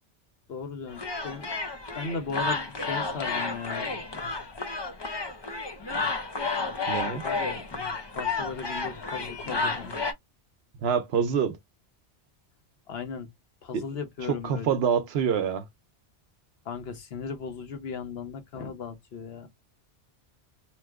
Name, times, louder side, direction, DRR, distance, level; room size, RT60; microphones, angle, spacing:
voice 1, 0.5-1.5 1.9-3.9 6.9-7.6 8.1-10.0 12.9-13.3 13.6-14.8 16.6-19.5, left 5 dB, 70° left, 1.0 m, -37 dB
sound 1, 0.9-10.1, left 3 dB, 35° left, 0.5 m, -31 dB
voice 2, 6.9-7.2 10.8-11.6 13.7-13.8 14.3-15.6, right 7 dB, 70° right, 0.9 m, -26 dB
2.9 x 2.1 x 3.4 m
omnidirectional pair, 1.1 m